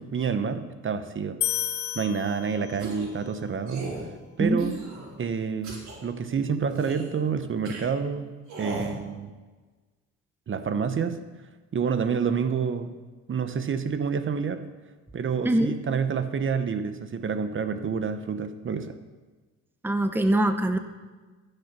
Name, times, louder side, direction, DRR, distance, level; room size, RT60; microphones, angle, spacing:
voice 1, 0.0-1.4 1.9-3.9 4.4-4.8 5.2-9.3 10.5-11.2 11.7-12.9 13.3-14.6 15.1-18.9, right 6 dB, 40° right, 10 dB, 0.9 m, -28 dB
sound 1, 1.4-3.0, left 12 dB, 70° left, 0.6 m, -31 dB
sound 2, 2.8-3.1 3.7-4.0 4.6-5.1 5.6-6.0 6.7-7.1 7.6-7.8 8.5-8.9, right 3 dB, 65° right, 4.2 m, -37 dB
voice 2, 4.4-4.8 15.4-15.7 19.8-20.8, right 1 dB, 5° right, 7 dB, 0.9 m, -23 dB
14.5 x 6.6 x 6.0 m, 1.3 s
cardioid pair, 90°, 30 cm